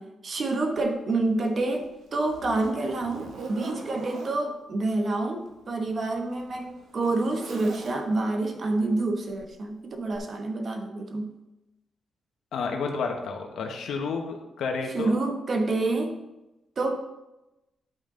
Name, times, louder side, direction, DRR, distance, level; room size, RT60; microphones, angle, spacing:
voice 1, 0.0-11.4 14.9-16.2 16.8-17.0, right 2 dB, 45° right, 4 dB, 1.1 m, -28 dB
Zipper (clothing), 0.8-0.9 1.5-4.4 5.4-8.3 9.3-9.5 10.1-10.2, right 3 dB, 85° right, 1.1 m, -43 dB
voice 2, 12.5-15.2, left 4 dB, 85° left, 3 dB, 1.2 m, -31 dB
9.4 x 5.6 x 3.9 m, 0.97 s
cardioid pair, 125°, 0 cm